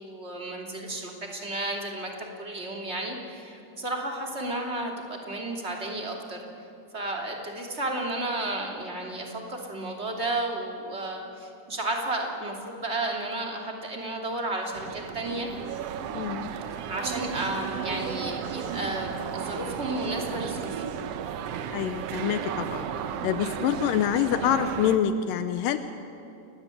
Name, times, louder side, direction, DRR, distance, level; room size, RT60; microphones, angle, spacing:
voice 1, 0.0-6.4 6.9-15.5 16.9-20.8, right 2 dB, 20° right, 0 dB, 2.7 m, -32 dB
sound 1, 14.7-25.0, right 8 dB, 70° right, 1.5 m, -34 dB
voice 2, 16.1-16.5 21.7-22.8 23.2-25.8, left 9 dB, 80° left, 9 dB, 2.4 m, -26 dB
29.5 x 15.0 x 9.9 m, 2.7 s
omnidirectional pair, 3.9 m